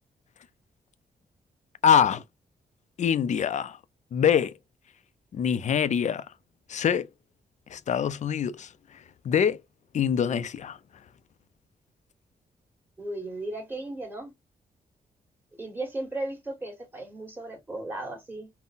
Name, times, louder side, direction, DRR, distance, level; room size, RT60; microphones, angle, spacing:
voice 1, 1.8-2.2 3.0-3.8 4.1-4.6 5.3-6.2 6.7-7.1 7.7-9.6 9.9-10.8, left 8 dB, 50° left, 0.4 m, -24 dB
voice 2, 13.0-14.3 15.6-18.5, right 2 dB, 15° right, 1.4 m, -35 dB
3.8 x 2.1 x 2.5 m
cardioid pair, 100°, 15 cm